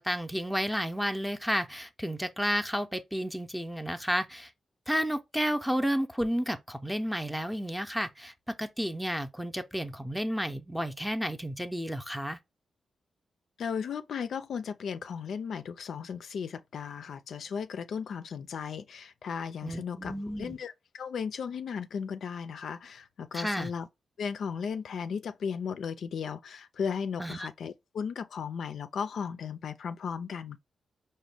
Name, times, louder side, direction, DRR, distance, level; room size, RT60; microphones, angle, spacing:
voice 1, 0.0-4.5 4.9-12.4 19.6-20.6 23.3-23.7 27.2-27.5, equal, ahead, 0.5 m, -31 dB
voice 2, 13.6-23.9 24.2-30.6, left 6 dB, 75° left, 0.3 m, -36 dB
5.0 x 2.1 x 3.3 m
cardioid pair, 85°, 0 cm